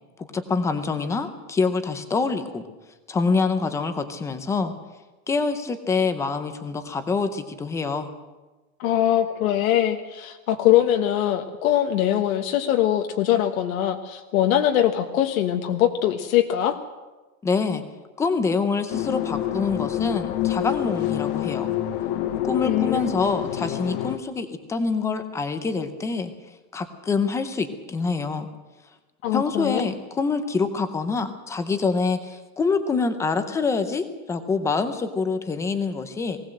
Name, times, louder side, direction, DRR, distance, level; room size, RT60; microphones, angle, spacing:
voice 1, 0.2-2.6 3.1-4.7 5.3-8.1 17.4-17.8 18.2-21.7 22.4-26.3 26.7-28.5 29.3-36.4, left 4 dB, 5° left, 9 dB, 0.7 m, -26 dB
voice 2, 8.8-16.8 22.6-23.1 29.2-29.9, left 11 dB, 75° left, 5 dB, 1.5 m, -22 dB
sound 1, 18.9-24.2, left 13 dB, 35° left, 1.1 m, -27 dB
19.5 x 18.0 x 7.7 m, 1.2 s
supercardioid pair, 180°, 42 cm